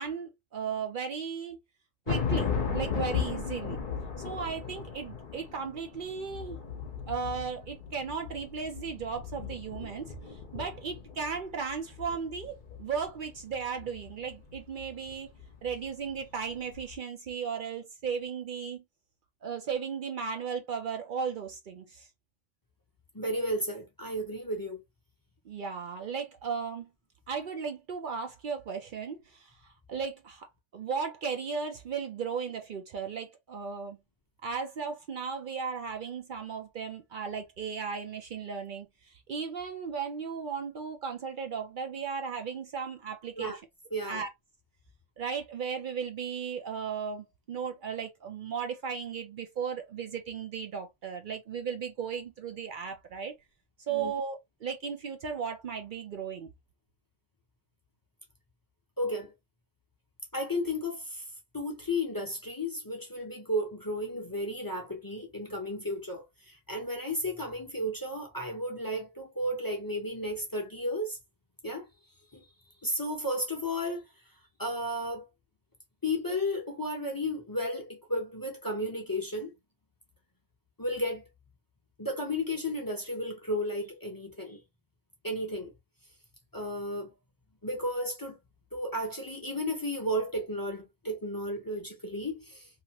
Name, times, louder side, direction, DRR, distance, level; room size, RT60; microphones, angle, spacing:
voice 1, 0.0-1.6 2.1-3.8 4.2-6.6 7.1-15.3 15.6-18.8 19.4-22.1 25.5-26.9 27.3-29.6 29.9-30.5 30.7-34.0 34.4-43.6 44.1-44.3 45.2-53.3 53.9-56.5, right 6 dB, 60° right, 0.7 m, -36 dB
sound 1, 2.1-16.5 16.7-17.0, left 6 dB, 50° left, 0.8 m, -36 dB
voice 2, 23.1-24.8 43.4-43.6 43.9-44.2 53.9-54.1 59.0-59.3 60.3-61.2 61.5-71.2 71.6-71.9 72.3-72.4 72.8-74.0 74.6-75.3 76.0-79.5 80.8-81.2 82.0-84.6 85.2-85.7 86.5-87.1 87.6-88.4 88.7-92.7, left 1 dB, 25° left, 0.7 m, -33 dB
2.8 x 2.4 x 2.9 m
omnidirectional pair, 1.1 m